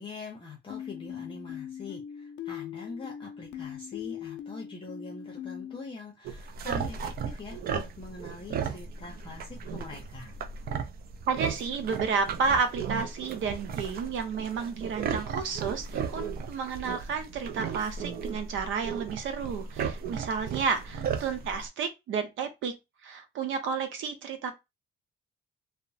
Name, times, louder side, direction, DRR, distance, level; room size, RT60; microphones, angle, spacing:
voice 1, 0.0-10.3, left 3 dB, 25° left, 0.7 m, -43 dB
sound 1, 0.7-5.8, left 9 dB, 65° left, 0.5 m, -40 dB
sound 2, 6.2-21.7, right 6 dB, 50° right, 0.4 m, -35 dB
voice 2, 11.3-22.7 23.0-24.5, right 5 dB, 80° right, 0.7 m, -31 dB
2.9 x 2.1 x 2.6 m
cardioid pair, 130°, 20 cm